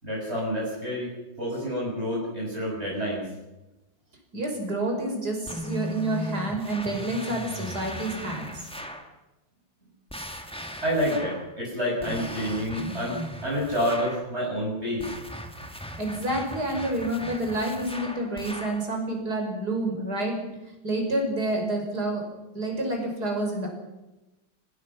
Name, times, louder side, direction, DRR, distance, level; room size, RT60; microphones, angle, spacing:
voice 1, 0.0-1.1 1.4-3.2 10.8-13.1 13.4-15.1, equal, 30° right, -5 dB, 7.1 m, -28 dB
voice 2, 4.3-8.7 16.0-20.4 20.8-22.3 22.5-23.7, right 1 dB, 55° right, 3 dB, 6.2 m, -28 dB
sound 1, 5.5-9.1 10.1-11.5 12.0-14.3 15.0-18.9, equal, 5° left, 1.8 m, -38 dB
26.0 x 20.0 x 6.2 m, 1.0 s
omnidirectional pair, 2.1 m